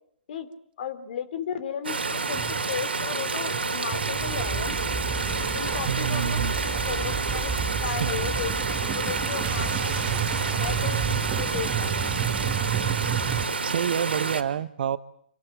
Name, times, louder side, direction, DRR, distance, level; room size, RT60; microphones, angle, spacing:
voice 1, 0.8-4.9 5.5-7.5 7.8-9.9 10.6-12.1, left 8 dB, 60° left, 13 dB, 3.5 m, -35 dB
sound 1, 1.8-14.4, right 4 dB, 90° right, 3.0 m, -29 dB
sound 2, 2.3-3.1 3.4-13.5, right 8 dB, 25° right, 2.1 m, -31 dB
sound 3, 5.2-11.0, left 8 dB, 30° left, 2.5 m, -45 dB
voice 2, 5.9-6.6 7.9-8.1 13.6-15.0, right 9 dB, 65° right, 13 dB, 1.5 m, -27 dB
27.5 x 19.0 x 9.1 m, 0.66 s
hypercardioid pair, 125°, 6 cm